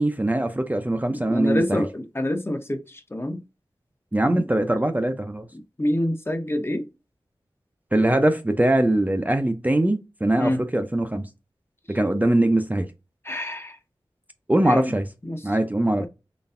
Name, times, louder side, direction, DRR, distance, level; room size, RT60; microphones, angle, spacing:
voice 1, 0.0-1.8 4.1-5.5 7.9-11.2 11.9-12.9 14.5-15.0 15.4-16.1, right 1 dB, 15° right, 0.5 m, -22 dB
voice 2, 1.1-3.4 4.3-4.5 5.5-6.9 10.4-10.6 13.2-13.8 14.6-14.9 15.2-15.5 16.0-16.1, left 1 dB, 25° left, 0.8 m, -27 dB
4.0 x 3.2 x 2.5 m
cardioid pair, 40°, 9 cm